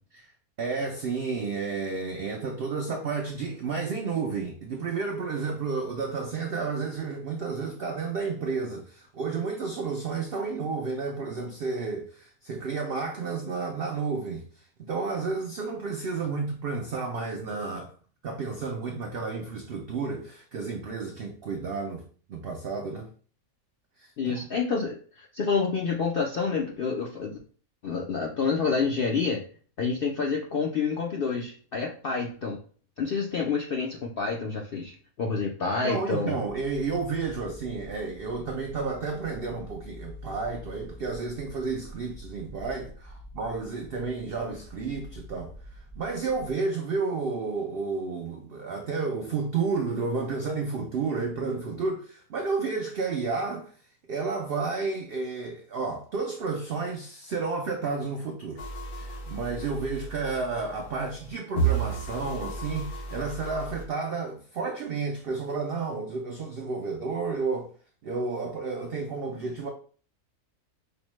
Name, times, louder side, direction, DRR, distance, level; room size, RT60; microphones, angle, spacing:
voice 1, 0.6-14.5 14.8-17.9 18.2-23.1 24.0-24.4 35.8-45.5 46.0-53.7 54.1-58.6 58.9-67.7 68.0-69.7, right 4 dB, 75° right, 0.5 m, -31 dB
voice 2, 24.2-27.4 27.8-29.4 29.8-32.6 33.0-36.4, left 5 dB, 70° left, 0.5 m, -28 dB
sound 1, 36.4-46.5, equal, ahead, 0.5 m, -46 dB
sound 2, 58.6-63.8, right 5 dB, 85° left, 1.4 m, -33 dB
5.2 x 2.1 x 3.0 m
omnidirectional pair, 1.6 m